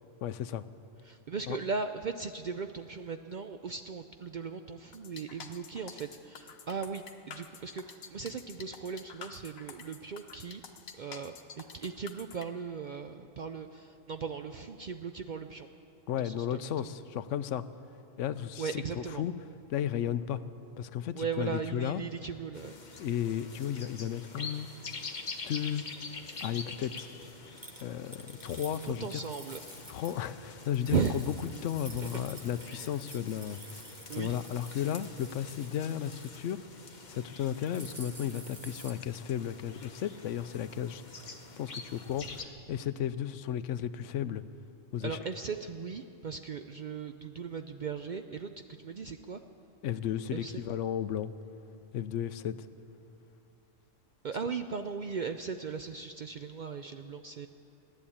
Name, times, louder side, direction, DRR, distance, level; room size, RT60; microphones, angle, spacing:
voice 1, 0.2-0.6 1.5-1.6 16.1-17.6 18.2-18.8 19.2-19.3 19.7-20.4 20.8-22.0 23.0-24.7 25.4-25.8 26.4-27.1 27.8-29.2 29.9-31.2 31.6-33.6 34.2-36.6 37.1-44.4 44.9-45.2 49.8-51.3 51.9-52.5, left 10 dB, 70° left, 13 dB, 0.9 m, -34 dB
voice 2, 1.0-10.6 11.0-15.7 16.2-16.6 18.6-19.2 21.1-22.8 28.8-30.0 30.9-31.2 32.0-32.2 32.6-32.9 34.1-34.4 45.0-49.4 50.3-50.6 54.2-57.5, right 6 dB, 70° right, 7 dB, 0.4 m, -37 dB
sound 1, 4.9-12.5, left 6 dB, 90° left, 1.4 m, -48 dB
sound 2, 22.5-42.5, left 4 dB, 35° left, 1.1 m, -46 dB
sound 3, 27.6-30.3 30.6-36.5 36.9-37.2 37.4-38.9, right 2 dB, 20° right, 0.8 m, -51 dB
15.5 x 11.0 x 8.6 m, 2.7 s
omnidirectional pair, 1.4 m